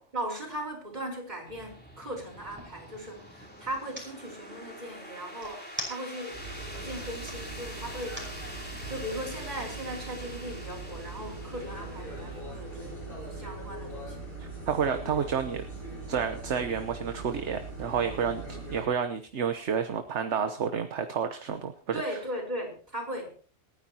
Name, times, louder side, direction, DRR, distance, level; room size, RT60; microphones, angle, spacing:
voice 1, 0.1-6.4 6.7-8.2 8.9-13.0 13.3-14.3 21.9-23.3, right 1 dB, 35° right, 0 dB, 4.8 m, -38 dB
sound 1, 0.7-0.8 1.2-2.8 3.7-4.1 5.4-6.4 6.8-7.4 8.0-8.4, equal, 10° right, 5.5 m, -41 dB
sound 2, 1.4-20.1, equal, 5° left, 3.4 m, -47 dB
sound 3, 6.3-18.8, right 2 dB, 45° left, 7.8 m, -41 dB
voice 2, 14.4-15.6 16.1-22.0, right 7 dB, 65° right, 8 dB, 1.2 m, -30 dB
27.0 x 10.5 x 2.9 m, 0.38 s
omnidirectional pair, 1.3 m